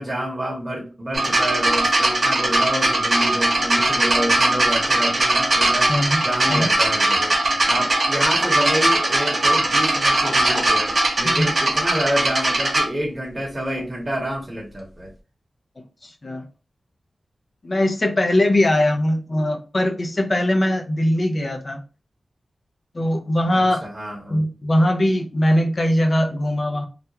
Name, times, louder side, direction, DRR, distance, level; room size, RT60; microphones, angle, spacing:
voice 1, 0.0-5.9 6.2-7.3 7.7-15.1 23.5-24.4, equal, 25° right, -2 dB, 1.0 m, -28 dB
sound 1, 1.1-12.8 13.8-13.9, right 2 dB, 60° right, 0.9 m, -20 dB
voice 2, 5.9-6.2 6.5-6.7 11.2-11.5 16.0-16.4 17.6-21.8 22.9-23.9 24.3-26.9, left 1 dB, 50° left, 4 dB, 0.6 m, -21 dB
2.4 x 2.2 x 2.8 m, 0.34 s
cardioid pair, 50°, 0 cm